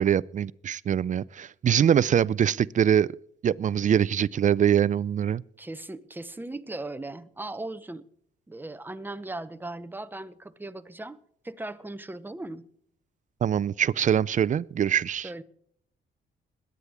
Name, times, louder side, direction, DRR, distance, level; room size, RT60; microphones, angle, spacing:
voice 1, 0.0-3.2 3.4-5.4 13.4-15.3, right 9 dB, 40° right, 0.4 m, -23 dB
voice 2, 5.6-8.1 8.5-11.2 11.4-12.7 15.2-15.4, right 2 dB, 10° right, 0.8 m, -38 dB
21.5 x 9.7 x 3.5 m
cardioid pair, 90°, 20 cm